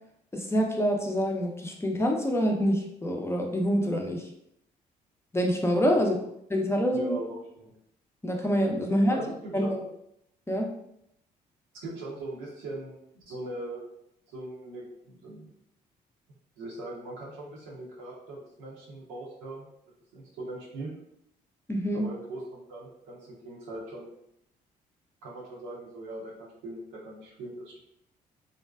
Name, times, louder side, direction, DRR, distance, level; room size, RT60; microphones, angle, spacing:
voice 1, 0.3-4.2 5.3-6.1 6.5-7.2 8.2-9.2 9.5-9.8 10.5-10.7 21.7-22.0, equal, 15° left, 1 dB, 0.6 m, -26 dB
voice 2, 5.9-6.2 6.9-7.7 8.8-9.9 11.8-13.8 14.3-15.5 16.6-19.7 20.1-20.9 21.9-24.1 25.2-27.8, right 2 dB, 75° right, -4 dB, 0.8 m, -40 dB
2.5 x 2.2 x 2.3 m, 0.75 s
hypercardioid pair, 50°, 20 cm